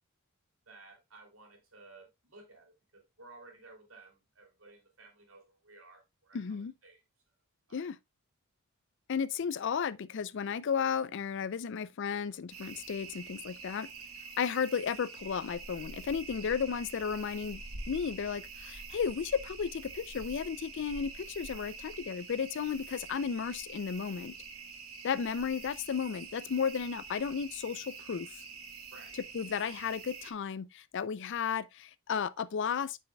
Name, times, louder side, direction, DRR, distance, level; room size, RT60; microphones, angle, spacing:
voice 1, 0.7-7.0 7.7-7.9 28.9-29.1, right 3 dB, 70° right, 3.1 m, -56 dB
voice 2, 6.3-6.7 7.7-8.0 9.1-13.9 14.4-17.6 17.9-24.3 25.0-28.3 29.3-33.0, left 6 dB, 60° left, 0.4 m, -34 dB
sound 1, 12.5-30.3, right 4 dB, 90° right, 1.3 m, -46 dB
9.2 x 5.6 x 2.2 m
head